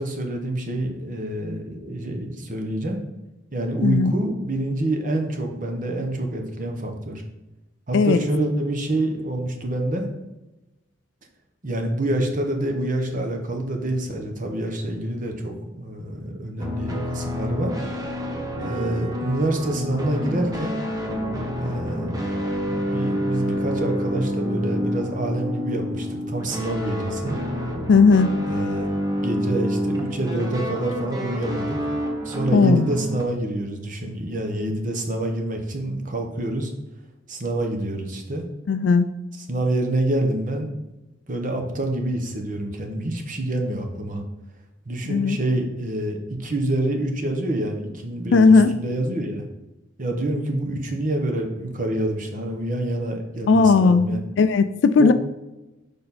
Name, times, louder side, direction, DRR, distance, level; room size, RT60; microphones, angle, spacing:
voice 1, 0.0-3.0 3.5-7.2 7.9-10.1 11.6-17.7 18.6-20.7 21.6-22.1 22.6-27.4 28.4-28.9 29.2-31.8 32.2-36.7 37.3-38.5 39.5-40.7 41.3-44.2 44.9-49.4 50.0-54.2 55.0-55.1, right 1 dB, 45° right, 4 dB, 1.1 m, -27 dB
voice 2, 3.8-4.1 7.9-8.2 27.9-28.4 32.5-32.9 38.7-39.1 45.1-45.4 48.3-48.7 53.5-55.1, left 4 dB, 65° left, 10 dB, 0.3 m, -16 dB
sound 1, 16.6-33.2, equal, 20° right, 1.0 m, -28 dB
6.7 x 5.2 x 4.2 m, 1.0 s
head